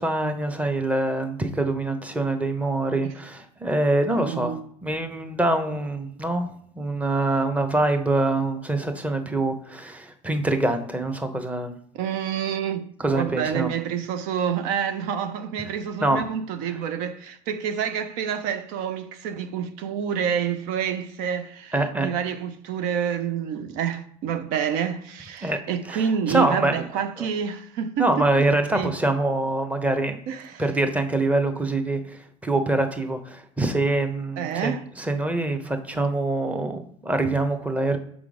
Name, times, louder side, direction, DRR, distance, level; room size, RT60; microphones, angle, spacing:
voice 1, 0.0-4.5 4.8-6.5 6.7-11.7 13.0-13.7 16.0-16.2 21.7-22.1 25.4-25.6 25.9-26.9 28.0-30.2 30.6-38.0, right 2 dB, 10° right, 0.8 m, -24 dB
voice 2, 4.2-4.6 11.9-28.3 28.7-28.9 30.3-30.6 34.4-34.8, right 8 dB, 70° right, 0.5 m, -28 dB
6.0 x 3.7 x 4.9 m
supercardioid pair, 100°, 15 cm